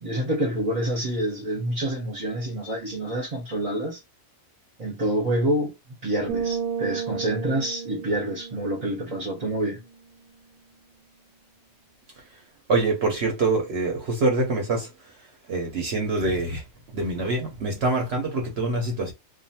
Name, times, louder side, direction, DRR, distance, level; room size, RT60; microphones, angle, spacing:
voice 1, 0.0-4.0 4.8-5.7 6.0-9.8, right 1 dB, 35° right, 0.6 m, -27 dB
sound 1, 6.3-10.0, right 7 dB, 90° right, 1.1 m, -33 dB
voice 2, 12.7-14.9 15.5-16.6 16.9-19.1, right 3 dB, 55° right, 0.8 m, -25 dB
2.5 x 2.4 x 2.7 m
omnidirectional pair, 1.5 m